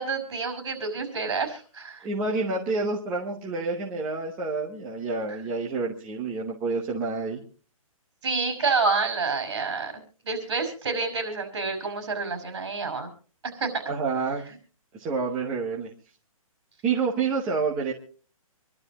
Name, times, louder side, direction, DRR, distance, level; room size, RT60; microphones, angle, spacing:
voice 1, 0.0-2.1 8.2-9.9 10.2-13.1 13.4-13.8, right 4 dB, 50° right, 8 dB, 5.6 m, -28 dB
voice 2, 2.0-7.4 13.9-14.4 15.0-15.9 16.8-17.9, right 4 dB, 10° right, -3 dB, 0.9 m, -28 dB
27.0 x 12.0 x 3.0 m, 0.41 s
hypercardioid pair, 180°, 18 cm